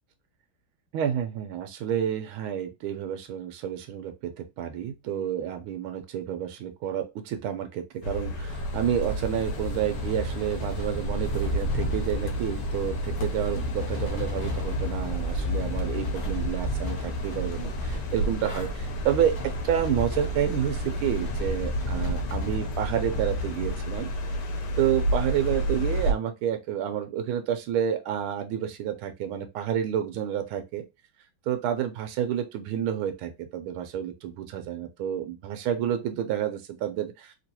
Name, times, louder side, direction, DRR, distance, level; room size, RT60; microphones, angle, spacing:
voice 1, 0.9-24.3 24.8-30.8 31.5-37.4, right 10 dB, 90° right, 1.4 m, -29 dB
sound 1, 8.0-26.1, equal, 65° left, 1.3 m, -32 dB
sound 2, 8.5-23.8, equal, 25° left, 1.5 m, -32 dB
3.2 x 3.0 x 2.8 m
omnidirectional pair, 2.2 m